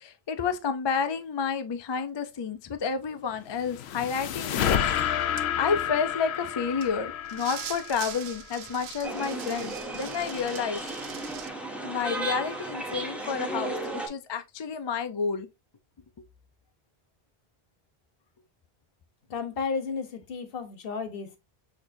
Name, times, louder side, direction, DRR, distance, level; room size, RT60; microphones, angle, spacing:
voice 1, 0.0-4.8 5.1-5.2 5.6-10.8 11.8-15.5, left 6 dB, 45° left, 0.3 m, -30 dB
sound 1, 3.3-8.7, left 9 dB, 90° left, 0.8 m, -30 dB
sound 2, 4.6-4.7 5.4-5.5 6.8-7.0 7.3-11.5, right 10 dB, 80° right, 0.8 m, -42 dB
sound 3, 9.0-14.1, right 2 dB, ahead, 0.8 m, -34 dB
voice 2, 19.3-21.4, left 5 dB, 65° left, 1.0 m, -33 dB
6.3 x 3.0 x 2.5 m
omnidirectional pair, 1.0 m